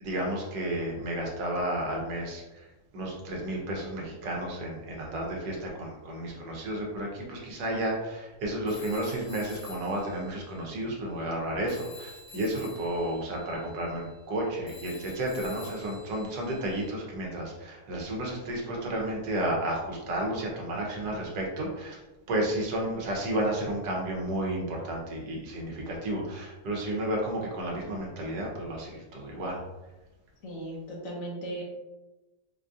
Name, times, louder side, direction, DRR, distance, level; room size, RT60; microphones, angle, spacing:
voice 1, 0.0-2.7 2.9-22.0 22.3-29.6, right 1 dB, 85° right, -1 dB, 1.4 m, -32 dB
Telephone, 8.7-11.4 11.7-16.9, left 4 dB, 45° left, 0.5 m, -50 dB
voice 2, 30.4-31.6, right 1 dB, 60° left, -2 dB, 1.1 m, -37 dB
4.1 x 2.6 x 2.4 m, 1.1 s
omnidirectional pair, 1.7 m